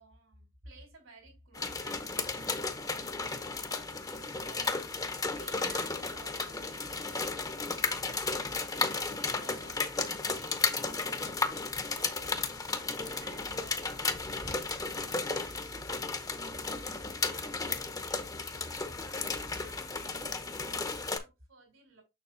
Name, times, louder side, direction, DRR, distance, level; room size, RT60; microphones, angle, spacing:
voice 1, 0.0-8.0 8.6-12.5 12.9-15.0 15.4-16.9 17.2-22.0, right 2 dB, 85° right, 3.8 m, -56 dB
sound 1, 1.5-21.2, left 3 dB, 20° left, 0.7 m, -34 dB
6.8 x 6.3 x 2.5 m
head